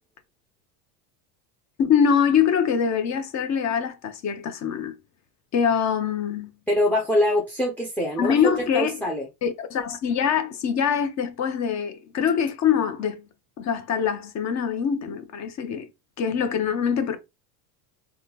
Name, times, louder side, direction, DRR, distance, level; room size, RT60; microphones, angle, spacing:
voice 1, 1.8-4.9 5.5-6.5 8.2-8.9 9.4-13.2 13.6-15.9 16.2-17.2, left 7 dB, 35° left, 0.8 m, -24 dB
voice 2, 6.7-9.3, left 1 dB, 5° left, 0.5 m, -24 dB
3.5 x 2.3 x 2.8 m
supercardioid pair, 115°, 46 cm